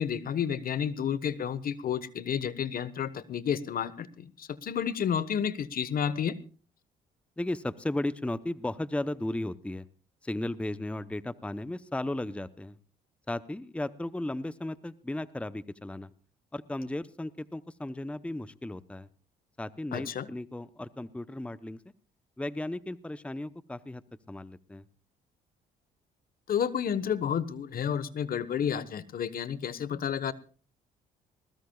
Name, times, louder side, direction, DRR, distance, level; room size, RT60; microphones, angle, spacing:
voice 1, 0.0-6.3 19.9-20.3 26.5-30.3, left 8 dB, 55° left, 16 dB, 1.3 m, -31 dB
voice 2, 7.4-9.8 10.2-12.8 13.3-16.1 16.5-19.1 19.6-21.8 22.4-24.0 24.3-24.8, left 1 dB, 5° left, 14 dB, 0.8 m, -35 dB
20.5 x 20.0 x 2.4 m, 0.38 s
supercardioid pair, 70°, 18 cm